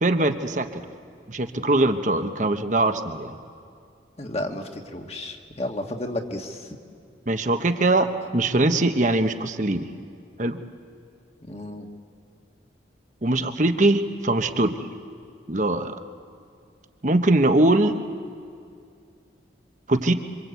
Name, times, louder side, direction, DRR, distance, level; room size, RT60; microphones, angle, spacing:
voice 1, 0.0-0.8 1.3-3.3 7.3-9.9 10.4-10.6 13.2-14.8 15.5-15.9 17.0-18.0 19.9-20.1, right 2 dB, 40° right, 7 dB, 1.1 m, -22 dB
voice 2, 4.2-6.8 11.4-11.9, left 1 dB, 35° left, 3 dB, 1.8 m, -32 dB
26.5 x 25.5 x 8.3 m, 2.4 s
head